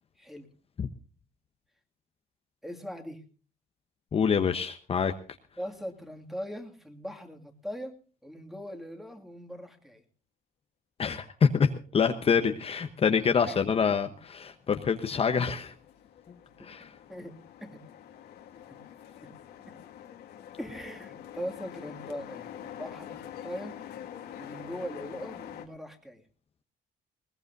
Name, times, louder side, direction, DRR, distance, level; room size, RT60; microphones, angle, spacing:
voice 1, 0.2-0.5 2.6-3.2 5.6-7.9 8.2-10.0 13.4-13.9 16.6-16.7 17.1-17.8 18.7-18.8 19.2-19.4 19.7-19.8 20.6-23.8 24.4-26.2, equal, ahead, 4 dB, 2.3 m, -40 dB
voice 2, 4.1-5.1 11.0-15.7 16.6-16.9, left 6 dB, 35° left, 7 dB, 1.0 m, -26 dB
sound 1, 15.0-25.7, left 10 dB, 75° left, 2.1 m, -45 dB
20.0 x 18.5 x 2.7 m, 0.38 s
cardioid pair, 110°, 17 cm